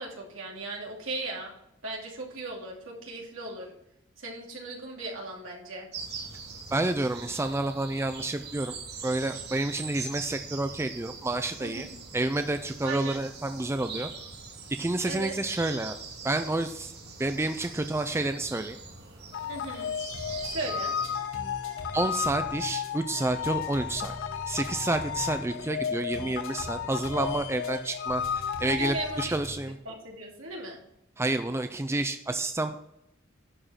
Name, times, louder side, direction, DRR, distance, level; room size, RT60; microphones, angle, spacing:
voice 1, 0.0-1.5 1.8-3.7 4.2-5.9 11.6-11.9 12.8-13.2 15.0-15.3 19.5-19.9 20.5-20.9 28.6-29.3 29.8-30.8, right 2 dB, 75° right, -2 dB, 2.7 m, -37 dB
sound 1, 5.9-21.2, right 4 dB, 55° right, 2.2 m, -42 dB
voice 2, 6.7-8.7 9.0-11.9 12.1-14.1 14.8-16.0 16.2-16.9 17.2-18.8 21.9-24.2 24.5-28.2 28.6-29.8 31.2-32.8, right 2 dB, 15° right, 8 dB, 0.4 m, -29 dB
sound 2, 19.3-29.3, left 8 dB, 60° left, 0.4 m, -34 dB
sound 3, 20.1-29.7, equal, 85° left, 2.0 m, -42 dB
11.5 x 5.0 x 5.7 m, 0.80 s
head